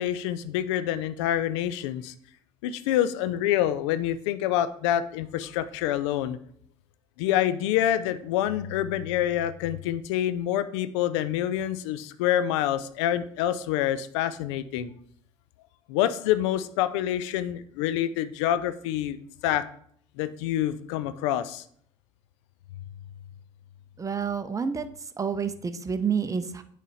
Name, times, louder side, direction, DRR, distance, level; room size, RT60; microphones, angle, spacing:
voice 1, 0.0-2.1 2.6-6.4 7.2-14.9 15.9-19.2 19.4-19.6 20.2-21.6, left 11 dB, 70° left, 14 dB, 0.4 m, -27 dB
voice 2, 24.0-24.9 25.2-26.6, right 6 dB, 20° right, 10 dB, 0.6 m, -28 dB
8.8 x 3.3 x 4.1 m, 0.63 s
figure-of-eight pair, 50°, 15 cm